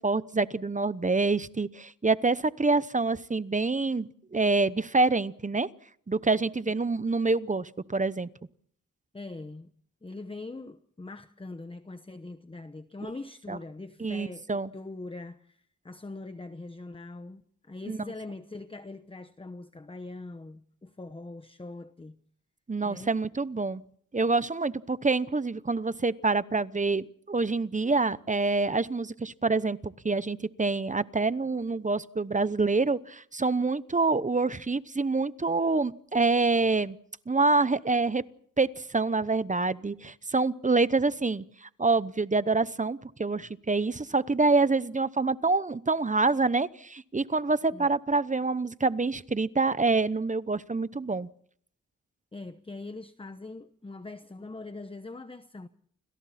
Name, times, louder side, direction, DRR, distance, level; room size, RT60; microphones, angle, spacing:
voice 1, 0.0-5.7 6.1-8.3 13.5-13.6 14.0-14.7 17.9-18.0 22.7-23.8 24.1-37.0 37.3-38.2 38.6-51.3, right 3 dB, 25° right, 0.9 m, -26 dB
voice 2, 9.1-9.7 10.0-22.2 22.8-23.2 47.7-47.9 52.3-55.7, left 2 dB, 15° left, 0.9 m, -42 dB
29.5 x 26.5 x 4.3 m
wide cardioid pair, 110°, 32 cm